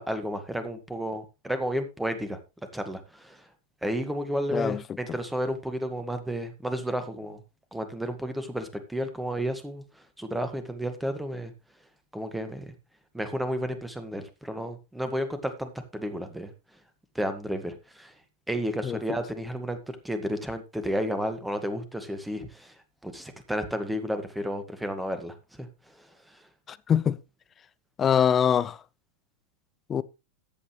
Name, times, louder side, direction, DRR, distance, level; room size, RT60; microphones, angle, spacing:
voice 1, 0.0-2.4 2.7-3.4 3.8-7.4 7.7-11.5 12.1-12.7 13.1-16.5 17.2-18.1 18.5-22.8 23.0-25.7 26.0-26.4, equal, 5° right, 1.9 m, -32 dB
voice 2, 26.7-27.2 28.0-28.8 29.9-30.0, left 8 dB, 25° left, 0.6 m, -23 dB
14.0 x 8.5 x 3.3 m
figure-of-eight pair, 90°, 0 cm